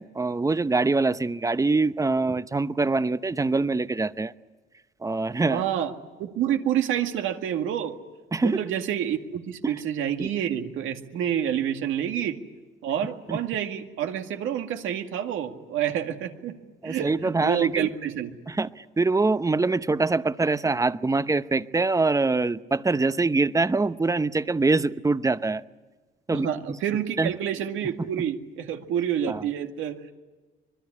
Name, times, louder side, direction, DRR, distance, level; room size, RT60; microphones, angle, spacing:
voice 1, 0.0-4.3 5.0-5.6 8.3-8.6 9.6-9.7 10.2-10.3 13.3-13.4 16.8-17.9 18.5-25.6 26.3-26.8 27.2-27.3 29.3-29.4, right 3 dB, 15° right, 14 dB, 0.8 m, -24 dB
voice 2, 5.4-5.9 6.2-8.0 8.4-12.4 12.8-16.6 16.8-18.4 26.3-30.1, right 9 dB, 90° right, 5 dB, 2.1 m, -28 dB
25.5 x 21.5 x 9.8 m, 1.3 s
cardioid pair, 90°, 20 cm